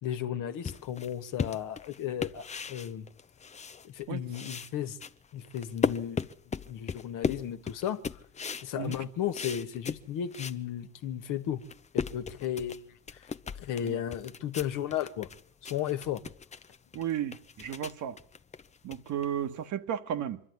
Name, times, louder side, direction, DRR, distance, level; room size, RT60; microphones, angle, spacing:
voice 1, 0.0-3.1 3.8-5.0 5.3-6.2 6.5-8.2 8.6-11.6 11.9-13.3 13.6-15.3 15.6-16.2, left 10 dB, 45° left, 1.6 m, -34 dB
sound 1, 0.6-4.0 4.3-10.6 11.1-11.2 11.5-19.6, left 6 dB, 15° left, 0.8 m, -37 dB
voice 2, 16.9-18.2 18.8-20.4, right 9 dB, 45° right, 1.5 m, -34 dB
23.5 x 12.5 x 9.6 m
hypercardioid pair, 85°, 43 cm